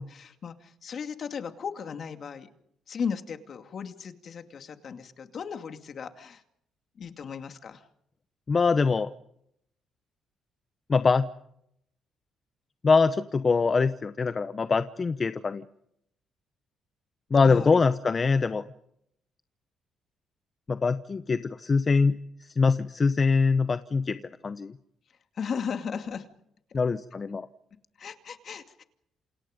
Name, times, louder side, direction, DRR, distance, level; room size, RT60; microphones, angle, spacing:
voice 1, 0.0-2.5 2.9-6.4 7.0-7.8 17.4-17.8 25.3-26.3 28.0-28.8, left 6 dB, 55° left, 7 dB, 2.4 m, -36 dB
voice 2, 8.5-9.1 10.9-11.2 12.8-15.6 17.3-18.6 20.7-22.2 22.6-24.7 26.7-27.5, left 4 dB, 35° left, 11 dB, 0.9 m, -23 dB
28.5 x 28.0 x 5.2 m, 0.76 s
cardioid pair, 90°, 0 cm